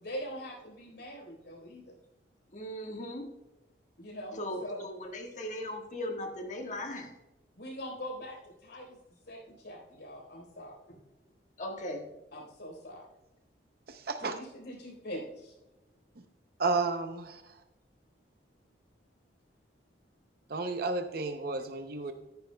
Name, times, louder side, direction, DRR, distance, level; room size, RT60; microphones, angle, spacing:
voice 1, 0.0-1.9 4.0-4.8 7.6-9.0 9.3-11.0 12.3-13.1 14.3-15.5, equal, 70° left, 0 dB, 3.9 m, -43 dB
voice 2, 2.5-3.3 4.4-7.2 11.6-12.1, left 1 dB, 40° left, 2 dB, 1.5 m, -38 dB
voice 3, 13.9-14.3 16.6-17.6 20.5-22.1, right 3 dB, 55° right, 7 dB, 0.6 m, -32 dB
14.0 x 10.5 x 2.2 m, 0.99 s
head